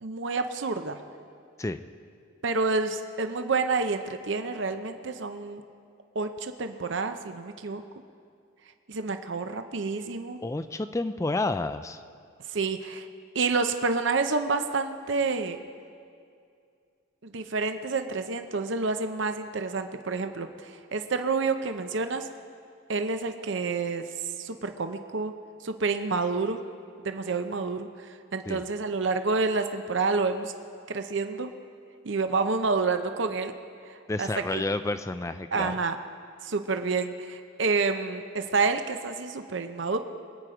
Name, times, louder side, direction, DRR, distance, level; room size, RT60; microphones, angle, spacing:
voice 1, 0.0-1.0 2.4-5.6 6.1-7.8 8.9-10.4 12.5-13.1 13.3-15.6 17.2-22.3 22.9-25.3 25.6-26.6 27.0-30.5 30.9-31.5 32.0-33.5 33.9-34.6 35.5-36.0 36.4-40.0, right 4 dB, 65° right, 8 dB, 0.7 m, -29 dB
voice 2, 10.4-12.0 28.5-28.6 34.1-35.7, left 2 dB, 15° left, 11 dB, 0.3 m, -30 dB
23.0 x 9.2 x 5.0 m, 2.4 s
head